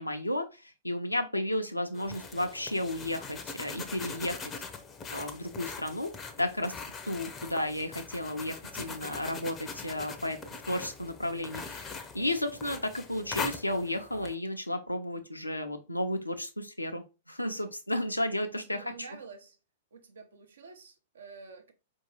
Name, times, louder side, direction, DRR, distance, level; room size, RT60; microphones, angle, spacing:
voice 1, 0.0-4.4 5.1-6.1 6.4-6.7 7.1-10.4 10.7-18.9, left 1 dB, 90° left, 0.6 m, -33 dB
sound 1, 1.9-14.4, left 5 dB, 20° left, 0.5 m, -42 dB
voice 2, 18.6-19.6 19.9-21.7, right 5 dB, 70° right, 0.7 m, -48 dB
4.5 x 2.7 x 2.8 m
figure-of-eight pair, 105°, 0 cm